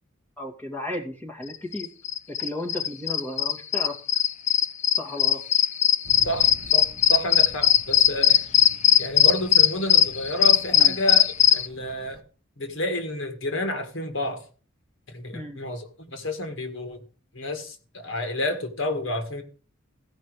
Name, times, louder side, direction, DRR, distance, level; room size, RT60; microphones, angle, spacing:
voice 1, 0.4-1.9 2.3-4.0 5.0-5.4 10.7-10.9 15.3-15.6, left 1 dB, 10° left, 0 dB, 2.4 m, -34 dB
sound 1, 1.7-11.7, left 10 dB, 35° left, 0.4 m, -19 dB
sound 2, 6.0-12.2, right 2 dB, 45° right, 1.0 m, -47 dB
voice 2, 6.2-8.4 9.0-12.2 12.6-14.4 15.1-17.0 17.3-19.4, left 1 dB, 65° left, 6 dB, 2.0 m, -30 dB
15.5 x 5.2 x 4.9 m, 0.37 s
head